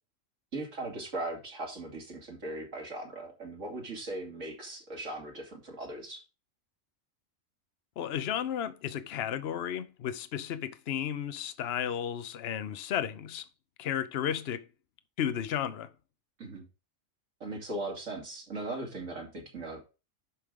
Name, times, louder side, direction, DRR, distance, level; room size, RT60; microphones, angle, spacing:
voice 1, 0.5-6.2 16.4-16.6 17.4-19.8, right 2 dB, 70° right, 2.8 m, -39 dB
voice 2, 8.0-13.5 13.8-14.7 15.2-15.9, left 9 dB, 55° left, 0.9 m, -33 dB
11.0 x 4.9 x 3.7 m
omnidirectional pair, 1.4 m